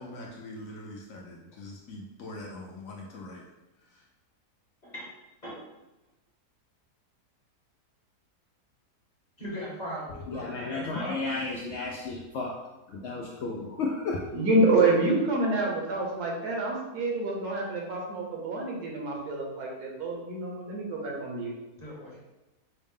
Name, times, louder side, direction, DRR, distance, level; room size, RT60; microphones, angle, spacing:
voice 1, 0.0-3.4 3.9-4.0, left 1 dB, 65° left, -1 dB, 0.9 m, -43 dB
voice 2, 9.4-11.3 21.8-22.2, equal, 35° left, -5 dB, 0.8 m, -39 dB
voice 3, 10.3-12.6 12.9-14.3, left 3 dB, 85° left, -2 dB, 0.6 m, -33 dB
voice 4, 14.3-21.5, right 2 dB, 70° right, -1 dB, 1.4 m, -27 dB
5.5 x 2.0 x 3.6 m, 1.0 s
omnidirectional pair, 1.7 m